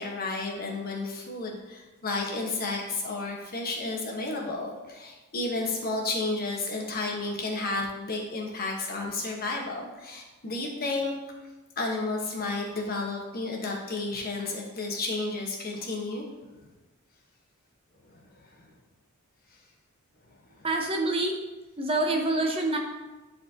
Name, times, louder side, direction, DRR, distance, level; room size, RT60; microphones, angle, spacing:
voice 1, 0.0-11.1 11.8-16.2 18.6-18.7, left 3 dB, 45° left, -1 dB, 1.3 m, -32 dB
voice 2, 20.6-21.3 21.8-22.8, right 2 dB, 25° right, 2 dB, 0.7 m, -26 dB
10.5 x 4.2 x 2.9 m, 1.2 s
head